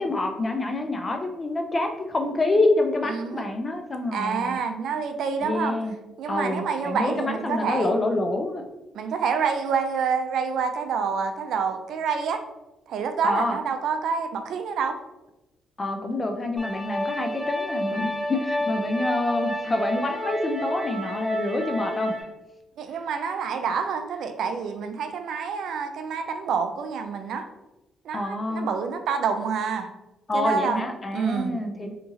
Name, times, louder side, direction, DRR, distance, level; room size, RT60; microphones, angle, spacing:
voice 1, 0.0-4.6 5.4-5.9 6.3-8.6 13.2-13.6 15.8-22.1 28.1-28.7 30.3-31.9, left 2 dB, 30° left, 4 dB, 0.4 m, -27 dB
voice 2, 3.1-3.5 4.1-5.7 6.2-7.9 8.9-12.4 12.9-15.0 22.8-27.5 28.0-29.9 30.3-30.8 31.1-31.6, right 6 dB, 75° right, 7 dB, 0.3 m, -27 dB
sound 1, 16.6-22.2, left 1 dB, 5° left, 0.7 m, -30 dB
2.9 x 2.6 x 2.4 m, 1.0 s
cardioid pair, 90°, 0 cm